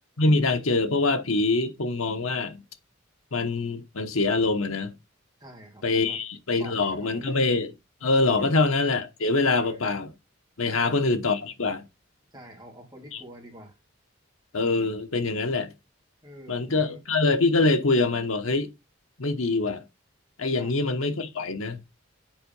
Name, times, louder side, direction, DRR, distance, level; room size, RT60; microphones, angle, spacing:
voice 1, 0.2-2.6 3.3-4.9 5.8-7.7 8.0-10.1 10.6-11.8 13.1-13.2 14.5-15.7 16.5-18.7 19.2-19.8 20.4-21.8, left 3 dB, 85° left, 1.1 m, -24 dB
voice 2, 5.4-6.2 6.6-7.4 8.4-8.5 9.5-9.8 10.7-10.9 12.3-13.8 16.2-17.0 20.5-20.8, right 1 dB, 20° right, 2.7 m, -45 dB
7.7 x 4.6 x 5.3 m
head